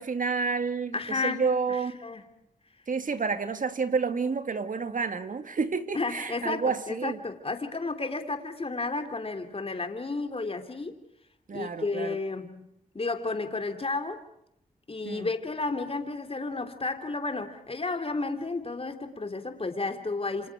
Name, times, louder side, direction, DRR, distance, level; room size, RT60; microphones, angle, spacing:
voice 1, 0.0-1.9 2.9-7.2 11.5-12.2 15.0-15.3, right 5 dB, 60° right, 2.1 m, -29 dB
voice 2, 0.9-2.2 5.9-10.9 11.5-12.7 12.9-14.2 14.9-20.5, left 3 dB, 40° left, 3.3 m, -32 dB
29.0 x 26.0 x 4.9 m
cardioid pair, 45°, 15 cm